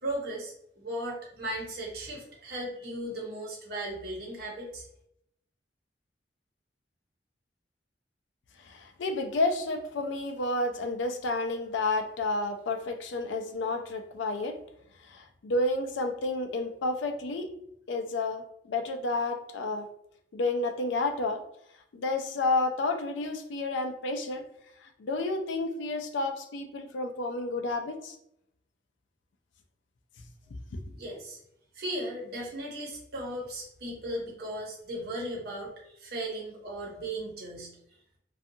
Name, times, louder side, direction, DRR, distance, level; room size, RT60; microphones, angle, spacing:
voice 1, 0.0-4.8 30.9-31.4 31.7-37.7, right 1 dB, 55° right, -2 dB, 0.9 m, -36 dB
voice 2, 8.6-14.6 15.0-17.5 17.9-19.9 20.3-21.4 21.9-24.4 24.8-28.2 30.7-30.8, left 2 dB, 85° left, 6 dB, 0.4 m, -30 dB
2.6 x 2.3 x 2.6 m, 0.75 s
head